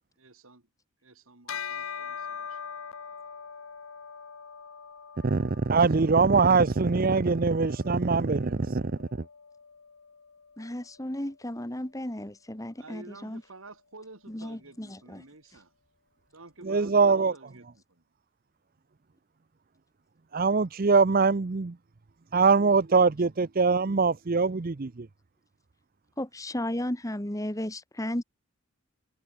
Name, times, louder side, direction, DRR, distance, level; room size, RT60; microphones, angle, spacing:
voice 1, 0.2-0.7 1.0-2.8 12.7-15.7 16.3-18.0, right 2 dB, 75° right, 2.9 m, -50 dB
Bell, 1.5-11.2, left 7 dB, 80° left, 1.1 m, -43 dB
voice 2, 5.2-9.1 16.6-17.3 20.3-21.8 22.3-25.1, right 4 dB, 40° right, 0.6 m, -23 dB
voice 3, 10.6-13.4 14.3-15.2 26.2-28.2, left 1 dB, 15° left, 1.7 m, -34 dB
head